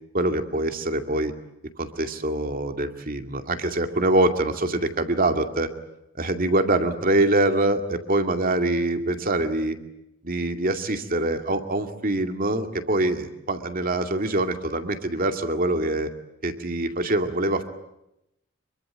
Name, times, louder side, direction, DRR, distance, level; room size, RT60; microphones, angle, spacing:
voice 1, 0.1-1.3 1.8-5.7 6.2-9.8 10.2-16.1 16.4-17.6, right 2 dB, 45° right, 6 dB, 2.4 m, -24 dB
26.0 x 24.0 x 9.1 m, 0.84 s
head